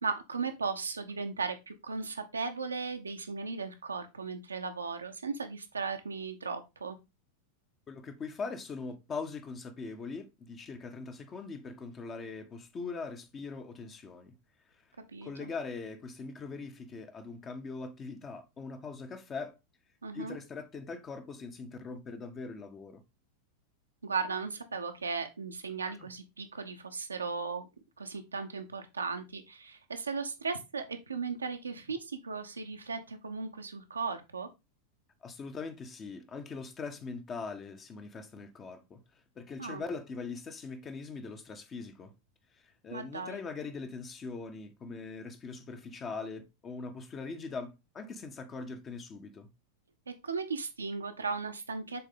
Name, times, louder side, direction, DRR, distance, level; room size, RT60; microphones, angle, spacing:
voice 1, 0.0-7.0 15.1-15.5 20.0-20.4 24.0-27.7 28.0-34.5 39.6-39.8 42.9-43.4 50.1-52.0, right 4 dB, 75° right, 0.8 m, -36 dB
voice 2, 7.9-14.3 15.2-19.5 20.1-23.0 26.0-26.1 35.2-39.0 39.4-42.1 42.8-49.5, left 4 dB, 25° left, 1.0 m, -41 dB
6.9 x 3.7 x 3.7 m
figure-of-eight pair, 90°, 0 cm